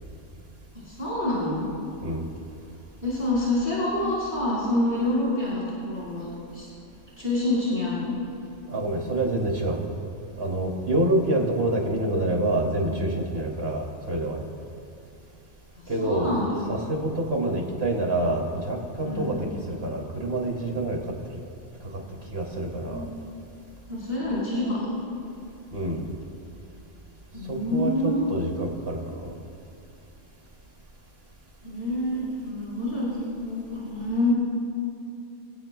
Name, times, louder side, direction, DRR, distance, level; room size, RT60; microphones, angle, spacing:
voice 1, 0.7-1.7 3.0-6.7 7.2-8.2 15.8-16.6 19.0-19.3 22.8-23.0 23.9-25.1 27.3-28.3 31.6-34.3, left 1 dB, 65° left, -9 dB, 4.8 m, -27 dB
voice 2, 8.7-9.8 10.4-14.4 15.9-16.4 16.7-21.0 22.3-23.1 25.7-26.0 27.5-29.2, right 1 dB, 55° right, -1 dB, 2.8 m, -27 dB
26.0 x 16.5 x 2.3 m, 2.7 s
omnidirectional pair, 1.2 m